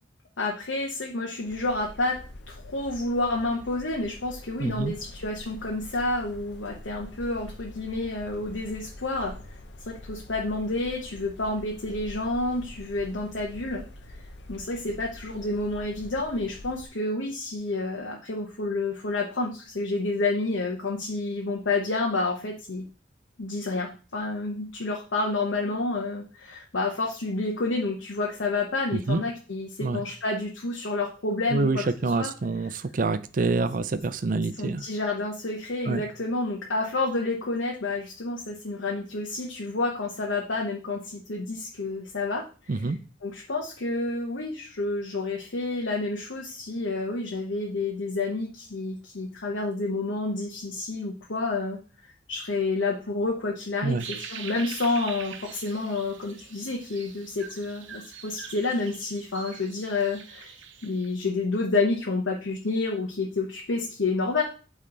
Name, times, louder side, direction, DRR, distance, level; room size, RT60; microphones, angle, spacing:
voice 1, 0.4-2.2 2.5-9.3 9.9-13.8 14.5-22.8 23.4-32.3 34.6-42.9 43.2-51.8 52.0-60.5 60.8-64.4, left 3 dB, 90° left, -1 dB, 1.0 m, -29 dB
sound 1, 1.5-16.9, left 1 dB, 65° left, 0.7 m, -45 dB
voice 2, 4.6-4.9 29.1-29.2 29.8-30.0 31.5-34.8 35.9-36.0 42.7-43.0 53.8-54.0, right 3 dB, 45° right, 13 dB, 0.4 m, -26 dB
sound 2, 54.0-61.1, right 7 dB, 85° right, 0.7 m, -43 dB
8.6 x 3.2 x 3.9 m, 0.36 s
head